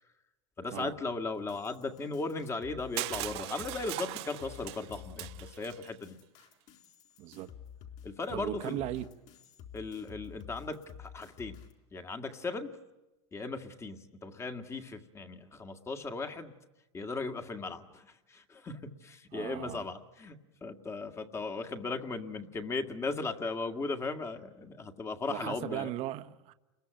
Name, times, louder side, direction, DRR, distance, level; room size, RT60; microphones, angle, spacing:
voice 1, 0.6-6.2 8.0-8.8 9.7-11.6 11.9-12.7 13.3-16.5 16.9-25.9, left 3 dB, 20° left, 1.9 m, -37 dB
sound 1, 1.4-11.7, left 8 dB, 50° left, 4.1 m, -51 dB
Crushing, 3.0-5.9, right 20 dB, 65° right, 1.2 m, -39 dB
voice 2, 7.2-7.5 8.3-9.1 19.3-19.9 25.3-26.5, right 14 dB, 45° right, 1.3 m, -37 dB
29.5 x 22.0 x 9.0 m
supercardioid pair, 130°, 15 cm